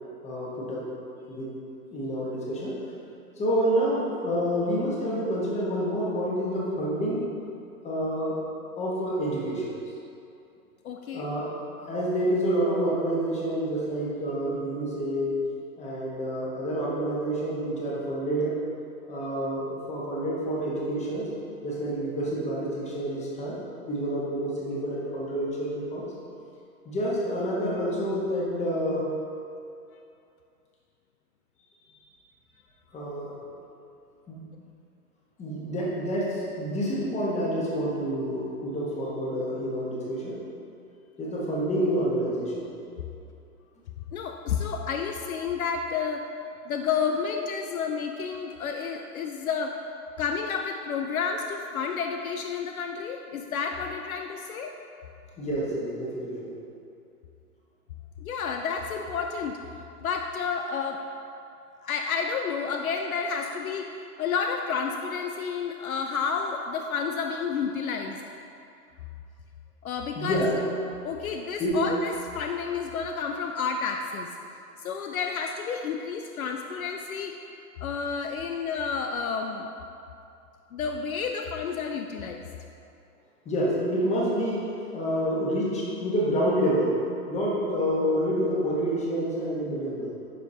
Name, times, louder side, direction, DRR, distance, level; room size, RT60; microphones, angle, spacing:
voice 1, 0.2-0.9 1.3-1.5 1.9-2.8 3.4-7.3 7.8-8.4 8.8-9.8 11.1-11.5 11.9-15.4 15.8-18.5 19.1-21.3 21.6-23.6 23.9-26.1 26.8-29.0 32.9-33.3 34.3-34.4 35.4-40.4 41.2-42.7 55.4-56.5 70.1-70.6 71.6-71.8 83.4-87.0 87.3-90.2, equal, 15° left, -5 dB, 1.3 m, -28 dB
voice 2, 10.8-11.3 44.1-46.2 46.7-49.7 50.2-54.7 58.2-59.6 60.0-61.0 61.8-63.9 64.2-68.2 69.8-70.4 71.0-74.3 74.8-77.4 77.8-79.7 80.7-82.4, left 6 dB, 65° left, 4 dB, 0.6 m, -30 dB
10.5 x 5.2 x 2.8 m, 2.6 s
hypercardioid pair, 125°, 47 cm